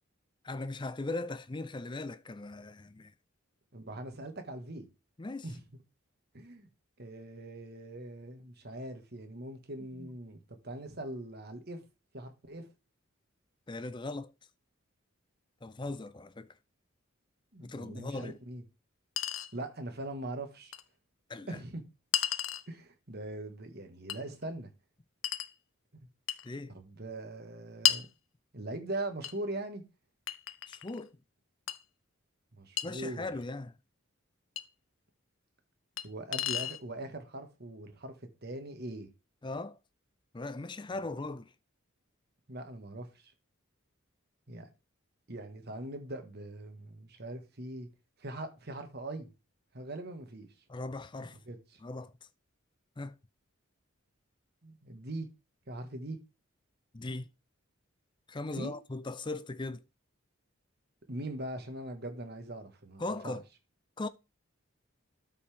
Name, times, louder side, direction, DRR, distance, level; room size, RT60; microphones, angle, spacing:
voice 1, 0.4-3.1 5.2-5.5 9.9-10.1 13.7-14.3 15.6-16.5 17.6-18.4 21.3-21.6 26.4-26.8 30.7-31.2 32.8-33.8 39.4-39.8 40.3-41.5 50.7-51.4 51.8-52.1 53.0-53.2 56.9-57.3 58.3-59.8 63.0-63.4 64.0-64.1, left 2 dB, 20° left, 0.5 m, -39 dB
voice 2, 3.7-4.9 5.4-5.6 6.3-6.7 7.0-11.8 12.1-12.7 17.5-18.6 19.5-20.7 21.5-21.8 22.7-24.7 26.7-28.1 28.5-29.8 32.5-33.3 36.0-39.1 42.5-43.3 44.5-44.7 45.3-47.9 48.2-49.3 49.7-50.5 51.5-51.8 54.6-55.3 55.7-56.2 58.6-58.7 61.1-63.4, right 1 dB, 50° right, 1.7 m, -41 dB
Chink clink, 18.2-18.3 19.2-19.5 20.7-20.8 22.1-22.7 24.1-24.2 25.2-25.5 26.3-26.5 27.8-28.1 29.2-29.4 30.3-31.0 31.7-31.8 32.8-32.9 34.6-34.7 36.0-36.1 36.3-36.8, left 12 dB, 65° left, 0.6 m, -32 dB
12.5 x 5.5 x 3.5 m
head